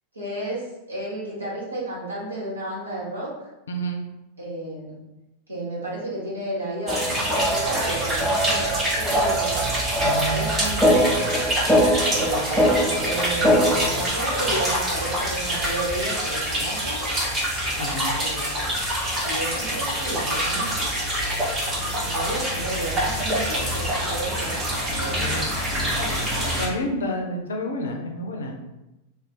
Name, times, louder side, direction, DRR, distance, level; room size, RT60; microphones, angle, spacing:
voice 1, 0.1-3.3 4.4-4.9 5.5-9.7 10.3-11.5 12.1-17.0 18.2-18.7 19.2-21.4 21.8-24.6 25.0-25.4 25.8-26.2, right 1 dB, 80° right, -6 dB, 1.1 m, -32 dB
voice 2, 3.7-4.0 10.0-10.5 17.8-18.1 25.2-25.4 26.6-28.6, equal, 70° left, 3 dB, 0.4 m, -29 dB
sound 1, 6.9-13.9, equal, 5° right, 0.5 m, -23 dB
sound 2, 6.9-26.7, right 1 dB, 20° right, 0.9 m, -26 dB
2.4 x 2.2 x 3.7 m, 0.98 s
figure-of-eight pair, 90°, 0 cm